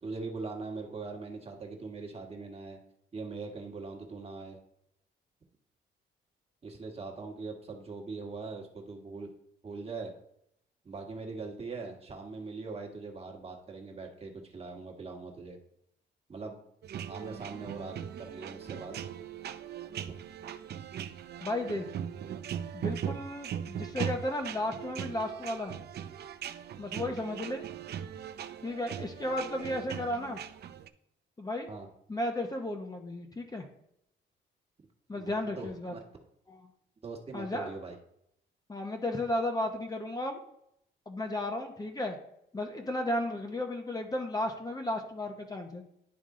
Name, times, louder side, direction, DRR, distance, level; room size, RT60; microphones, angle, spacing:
voice 1, 0.0-2.8 3.1-4.6 6.6-9.3 9.6-10.1 10.8-15.6 16.3-16.6 17.1-18.9 31.7-31.9 35.1-36.0 37.0-38.0, right 4 dB, 30° right, 2 dB, 1.5 m, -41 dB
sound 1, 16.8-30.9, right 9 dB, 55° right, 0.5 m, -39 dB
voice 2, 21.4-21.9 22.7-25.8 26.8-27.6 28.6-30.4 31.4-31.7 32.1-33.6 35.1-35.9 36.5-36.6 37.3-37.7 38.7-40.4 41.1-42.2 42.5-45.8, left 1 dB, 20° left, 3 dB, 0.9 m, -34 dB
10.5 x 3.5 x 3.8 m, 0.76 s
cardioid pair, 90°, 20 cm